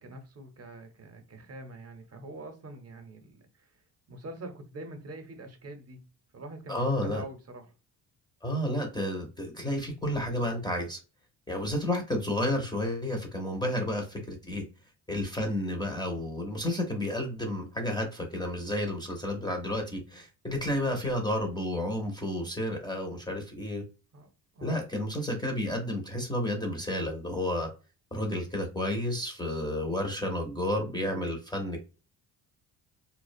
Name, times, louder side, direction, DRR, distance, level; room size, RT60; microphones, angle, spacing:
voice 1, 0.0-6.0 6.3-7.7 20.7-20.9 24.1-24.8, right 1 dB, 40° right, 0.6 m, -45 dB
voice 2, 6.7-7.2 8.4-11.0 11.5-14.6 15.1-23.8 24.6-27.7 28.1-31.8, left 1 dB, 10° left, 0.5 m, -31 dB
2.3 x 2.1 x 2.5 m
cardioid pair, 100°, 39 cm